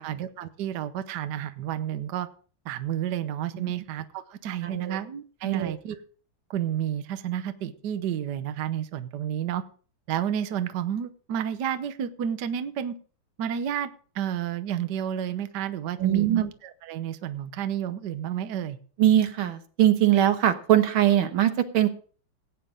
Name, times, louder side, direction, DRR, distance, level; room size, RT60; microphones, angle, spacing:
voice 1, 0.0-2.3 2.6-6.0 6.5-9.6 10.1-13.0 13.4-13.9 14.1-18.8, right 10 dB, 60° right, 11 dB, 1.3 m, -31 dB
voice 2, 4.6-5.0 5.4-5.8 16.0-16.4 19.0-21.9, right 12 dB, 80° right, 9 dB, 1.9 m, -22 dB
16.5 x 9.2 x 3.7 m, 0.41 s
omnidirectional pair, 2.2 m